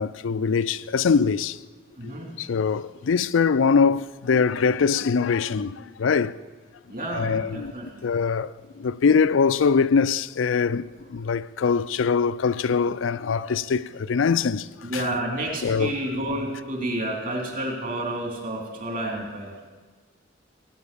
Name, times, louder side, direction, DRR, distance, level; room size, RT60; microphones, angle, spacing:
voice 1, 0.0-1.6 2.4-6.4 7.1-7.7 8.0-10.8 11.1-14.7 14.9-15.0 15.6-15.9, left 5 dB, 90° left, 0.4 m, -22 dB
voice 2, 2.0-2.3 6.9-8.0 14.8-19.5, right 1 dB, 45° right, 3.3 m, -30 dB
17.0 x 9.2 x 6.9 m
head